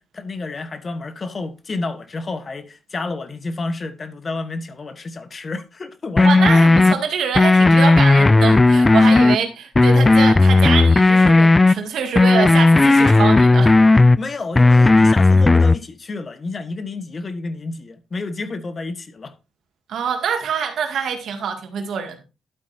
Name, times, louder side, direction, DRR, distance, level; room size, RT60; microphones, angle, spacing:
voice 1, 0.0-7.0 8.7-9.3 14.2-19.3, left 3 dB, 40° left, 1.4 m, -30 dB
sound 1, 6.2-6.9 7.4-9.4 9.8-11.7 12.2-14.2 14.6-15.8, left 2 dB, 25° left, 0.4 m, -13 dB
voice 2, 6.2-13.8 19.9-22.2, right 7 dB, 75° right, 2.1 m, -25 dB
11.5 x 8.5 x 2.7 m
supercardioid pair, 60°, 0 cm